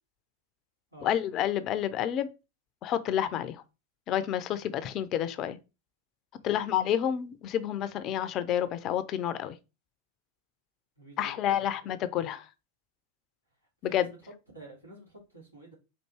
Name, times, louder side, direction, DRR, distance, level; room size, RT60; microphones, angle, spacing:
voice 1, 1.0-2.3 2.8-3.6 4.1-5.6 6.4-9.5 11.2-12.5 13.8-14.1, left 10 dB, 35° left, 0.5 m, -29 dB
voice 2, 11.0-11.6 13.9-14.2 14.5-15.7, right 2 dB, 85° right, 2.3 m, -49 dB
4.6 x 2.6 x 4.4 m
figure-of-eight pair, 90°, 0 cm